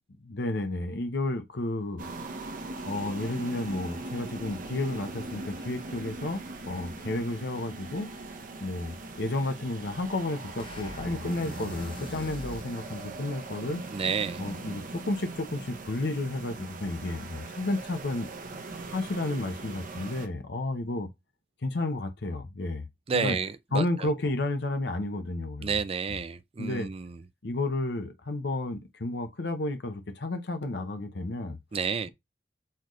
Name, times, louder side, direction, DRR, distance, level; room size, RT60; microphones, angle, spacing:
voice 1, 0.2-2.1 2.8-8.1 8.6-13.8 14.4-18.3 18.9-21.1 21.6-22.8 23.1-23.4 23.7-25.8 26.1-26.2 26.6-26.9 27.4-31.6, left 2 dB, 70° left, 0.8 m, -32 dB
sound 1, 2.0-20.3, right 3 dB, 50° right, 0.8 m, -40 dB
sound 2, 10.6-12.7, left 2 dB, 30° left, 0.7 m, -43 dB
voice 2, 13.9-14.4 23.1-24.1 25.6-27.2 31.7-32.1, right 5 dB, 35° right, 0.4 m, -30 dB
4.3 x 3.9 x 3.1 m
head